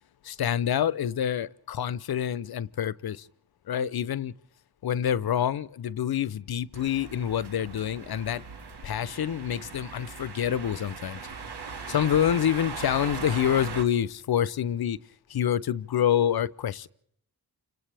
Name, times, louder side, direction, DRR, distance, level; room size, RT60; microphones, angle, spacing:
voice 1, 0.2-3.2 3.7-4.3 4.8-8.4 8.8-11.2 11.9-15.0 15.3-16.9, left 9 dB, 70° left, 0.7 m, -27 dB
sound 1, 6.7-13.8, right 5 dB, 90° right, 2.1 m, -39 dB
29.5 x 26.5 x 3.4 m
wide cardioid pair, 80°, 39 cm